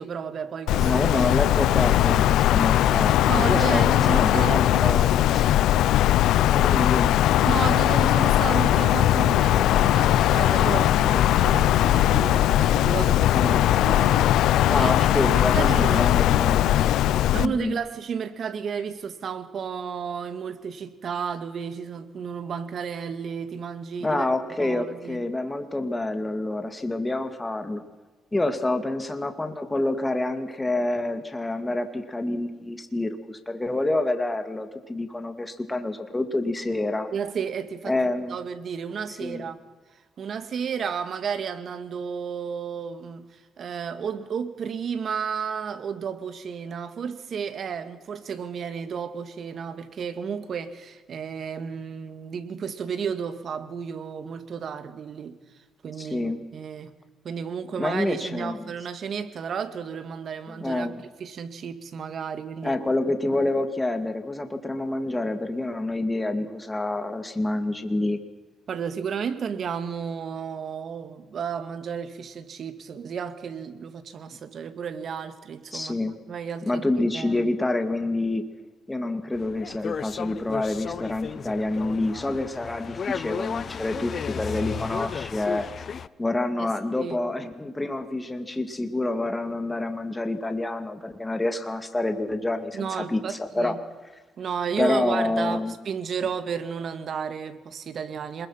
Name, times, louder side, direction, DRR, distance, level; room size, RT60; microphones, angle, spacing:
voice 1, 0.0-1.1 1.3-1.4 3.3-5.4 7.4-14.9 15.2-16.1 17.3-24.3 24.6-25.2 37.1-38.0 38.3-39.6 40.2-55.4 55.8-56.9 57.2-60.9 61.2-62.8 68.7-77.5 86.6-86.7 87.0-87.2 92.7-93.8 94.4-98.5, right 7 dB, 55° right, 10 dB, 2.2 m, -32 dB
Wind, 0.7-17.5, left 13 dB, 85° left, 0.6 m, -20 dB
voice 2, 0.8-5.4 6.4-7.2 13.3-13.7 14.7-17.0 17.3-17.8 24.0-27.8 28.3-37.1 37.9-38.4 39.2-39.5 56.0-56.4 57.8-58.6 60.5-61.0 62.6-68.2 75.7-76.2 76.7-78.4 78.9-85.7 86.2-93.8 94.8-95.7, left 2 dB, 15° left, 8 dB, 2.3 m, -27 dB
sound 1, 79.3-86.1, left 6 dB, 50° left, 0.7 m, -34 dB
27.5 x 21.0 x 5.8 m, 1.2 s
cardioid pair, 90°, 0 cm